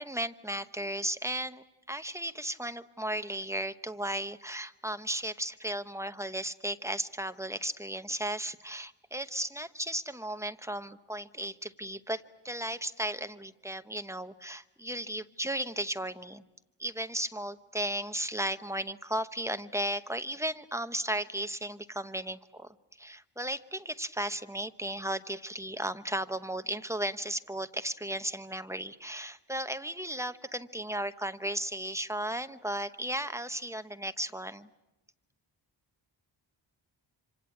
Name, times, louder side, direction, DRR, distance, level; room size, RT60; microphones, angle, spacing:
voice 1, 0.0-16.4 16.8-34.7, right 1 dB, 5° right, 10 dB, 0.9 m, -35 dB
26.0 x 26.0 x 8.4 m, 0.99 s
wide cardioid pair, 125°, 44 cm